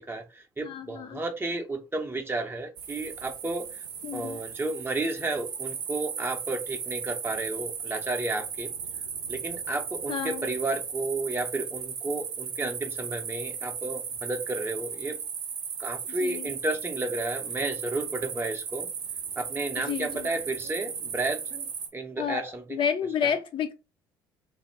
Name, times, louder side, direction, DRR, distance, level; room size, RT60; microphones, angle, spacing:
voice 1, 0.0-3.8 4.1-8.7 9.3-15.2 15.8-18.9 19.4-22.8 23.2-23.3, right 2 dB, 20° right, 0.6 m, -32 dB
voice 2, 0.6-1.2 4.0-4.4 10.1-10.4 16.2-16.5 19.9-20.3 22.2-22.4 22.7-23.7, left 8 dB, 45° left, 0.6 m, -30 dB
sound 1, 2.8-21.9, right 6 dB, 80° right, 0.5 m, -36 dB
2.5 x 2.1 x 3.3 m
hypercardioid pair, 50°, 12 cm